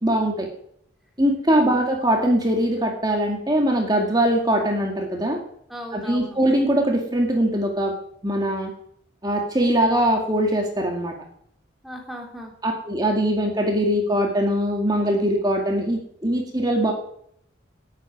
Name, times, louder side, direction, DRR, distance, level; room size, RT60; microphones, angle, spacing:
voice 1, 0.0-0.5 1.2-5.4 5.9-7.9 8.2-8.7 9.2-11.1 12.6-16.9, right 1 dB, 20° right, 1 dB, 2.2 m, -22 dB
voice 2, 1.5-1.9 5.7-6.4 11.8-12.5, equal, ahead, 0 dB, 3.0 m, -37 dB
19.0 x 8.7 x 6.1 m, 0.67 s
head